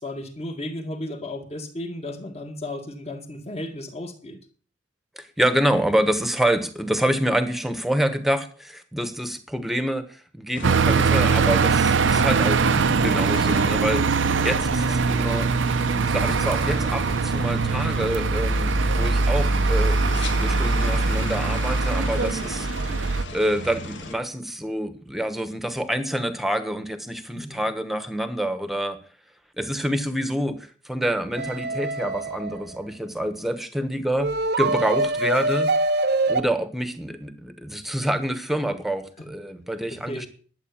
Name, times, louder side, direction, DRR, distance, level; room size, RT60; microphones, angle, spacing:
voice 1, 0.0-4.4 27.3-27.6 39.9-40.3, left 1 dB, 35° left, 5 dB, 2.0 m, -34 dB
voice 2, 5.2-14.1 14.4-15.5 16.0-22.7 23.3-29.0 29.6-30.6 30.8-34.3 34.6-35.7 36.3-40.3, right 1 dB, ahead, 10 dB, 1.2 m, -27 dB
sound 1, 10.5-24.1, left 2 dB, 80° left, 1.8 m, -37 dB
sound 2, 10.6-23.2, right 4 dB, 85° right, 0.7 m, -22 dB
sound 3, 31.4-32.8 34.2-36.4, right 2 dB, 55° right, 0.9 m, -24 dB
12.0 x 8.2 x 7.3 m, 0.42 s
head